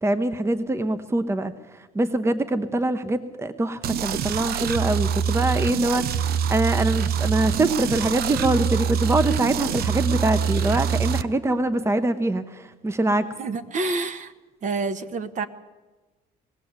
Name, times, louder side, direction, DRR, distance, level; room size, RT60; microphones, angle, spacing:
voice 1, 0.0-13.3, right 2 dB, 15° right, 12 dB, 1.0 m, -24 dB
sound 1, 3.8-11.2, right 7 dB, 65° right, 0.8 m, -25 dB
voice 2, 13.4-14.3 14.6-15.5, right 3 dB, 45° right, 10 dB, 1.3 m, -28 dB
20.5 x 16.5 x 8.1 m, 1.2 s
cardioid pair, 110°, 17 cm